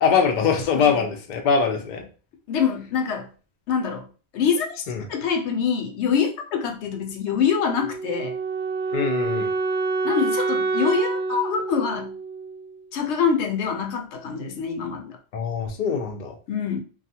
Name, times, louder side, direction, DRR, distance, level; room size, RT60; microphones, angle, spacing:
voice 1, 0.0-2.1 4.9-5.0 8.9-9.5 15.3-16.3, left 6 dB, 55° left, 3 dB, 0.6 m, -22 dB
voice 2, 0.7-1.1 2.5-3.3 3.7-4.1 4.3-4.8 5.1-8.3 10.0-12.1 12.9-15.2 16.5-16.8, left 6 dB, 90° left, 4 dB, 0.9 m, -25 dB
Wind instrument woodwind instrument, 7.8-12.8, right 3 dB, 60° right, 0.6 m, -27 dB
2.3 x 2.3 x 2.7 m, 0.36 s
omnidirectional pair, 1.1 m